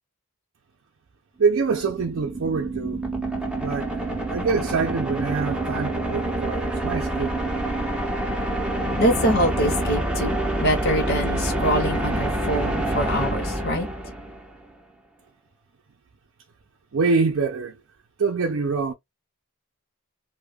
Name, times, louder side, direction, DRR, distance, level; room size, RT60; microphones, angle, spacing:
sound 1, 1.4-14.6, right 1 dB, 5° right, 0.5 m, -27 dB
voice 1, 1.4-3.0 3.6-4.0 4.3-7.4 16.9-17.8 18.2-18.9, right 4 dB, 65° right, 0.5 m, -25 dB
voice 2, 9.0-13.9, equal, 50° left, 0.7 m, -24 dB
2.2 x 2.1 x 3.2 m
head